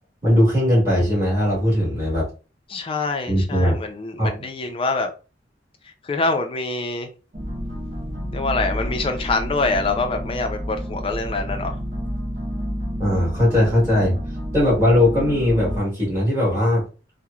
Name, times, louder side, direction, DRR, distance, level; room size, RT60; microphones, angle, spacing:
voice 1, 0.2-2.3 3.3-3.8 4.2-4.5 13.0-14.1 14.5-16.8, left 1 dB, 15° right, 1.4 m, -19 dB
voice 2, 2.7-5.1 6.0-7.1 8.3-11.8, left 3 dB, 30° left, 0.4 m, -25 dB
sound 1, 7.3-15.8, equal, 45° right, 0.8 m, -30 dB
2.9 x 2.0 x 2.3 m
head